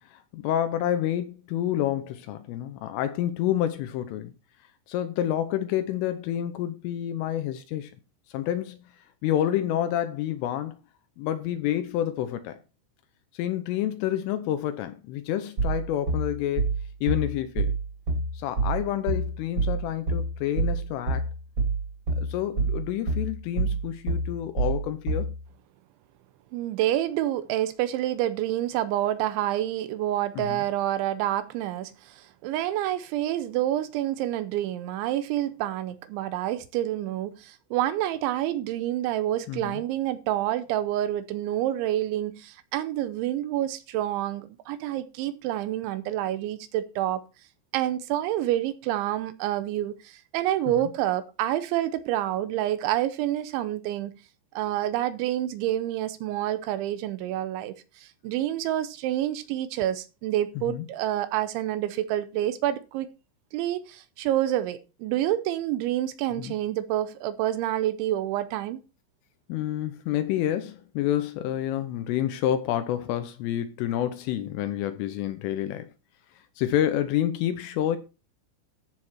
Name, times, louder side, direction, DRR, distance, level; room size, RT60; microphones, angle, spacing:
voice 1, 0.0-4.3 4.9-7.9 8.3-8.9 9.2-10.7 11.2-12.6 13.3-16.7 17.0-17.7 18.3-21.2 22.2-25.3 30.4-30.6 39.5-39.8 50.8-50.9 60.7-60.9 66.4-66.5 69.5-75.9 76.6-78.0, left 11 dB, 80° left, 3.3 m, -28 dB
sound 1, 15.6-25.4, right 3 dB, 30° right, 2.9 m, -27 dB
voice 2, 26.5-47.2 47.7-54.2 54.6-63.1 63.5-68.8, right 13 dB, 80° right, 2.8 m, -28 dB
14.0 x 7.0 x 4.3 m
omnidirectional pair, 6.0 m